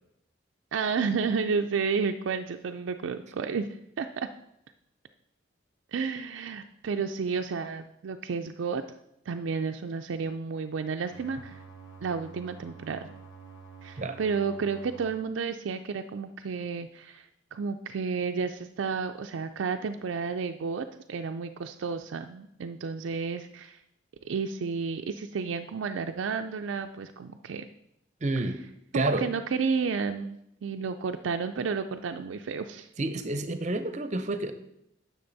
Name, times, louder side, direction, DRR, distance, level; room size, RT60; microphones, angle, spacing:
voice 1, 0.7-3.7 4.0-4.3 5.9-8.8 9.3-11.6 12.0-13.1 13.8-23.8 24.2-27.7 28.9-32.9, right 5 dB, 80° right, 6 dB, 0.4 m, -31 dB
sound 1, 11.0-15.1, right 5 dB, 85° left, 1.2 m, -48 dB
voice 2, 28.2-28.6 28.9-29.3 33.0-34.5, right 2 dB, 35° right, 9 dB, 0.6 m, -29 dB
10.0 x 6.2 x 4.0 m, 0.79 s
head